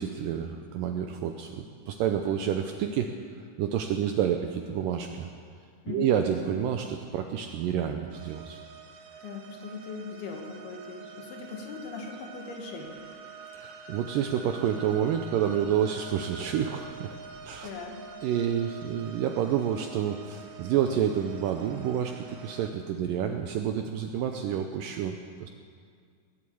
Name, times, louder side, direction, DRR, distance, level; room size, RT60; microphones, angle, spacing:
voice 1, 0.0-3.1 3.6-5.3 5.9-8.6 13.5-17.2 17.4-17.7 18.2-25.5, right 9 dB, 85° right, 5 dB, 2.0 m, -29 dB
sound 1, 8.1-22.7, right 5 dB, 65° right, 2.5 m, -46 dB
voice 2, 9.2-13.0 17.6-18.0, left 5 dB, 75° left, 1 dB, 3.6 m, -39 dB
19.5 x 7.9 x 8.4 m, 2.1 s
omnidirectional pair, 4.6 m